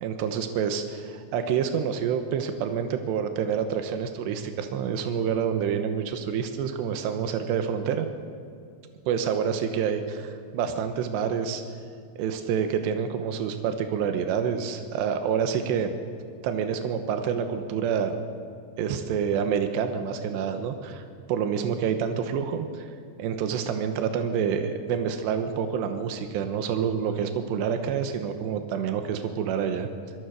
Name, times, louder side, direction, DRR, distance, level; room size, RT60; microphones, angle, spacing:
voice 1, 0.0-8.1 9.1-11.6 12.2-15.9 16.4-18.2 18.8-21.0 21.3-22.9 23.2-29.9, right 7 dB, 90° right, 7 dB, 3.3 m, -27 dB
25.0 x 21.5 x 6.4 m, 2.4 s
omnidirectional pair, 4.9 m